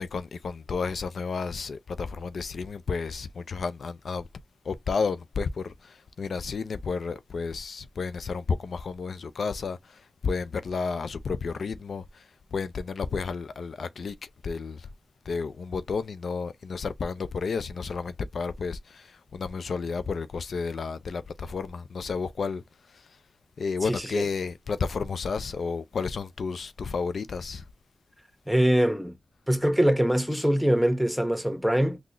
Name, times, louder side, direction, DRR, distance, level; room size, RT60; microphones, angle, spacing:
voice 1, 0.0-4.3 4.7-12.2 12.5-14.1 14.4-14.9 15.3-22.6 23.6-27.6 30.4-30.5, left 5 dB, 75° left, 0.4 m, -32 dB
voice 2, 23.8-24.3 28.5-29.1 29.5-32.0, equal, 5° right, 1.3 m, -23 dB
3.7 x 2.4 x 3.0 m
cardioid pair, 50°, 0 cm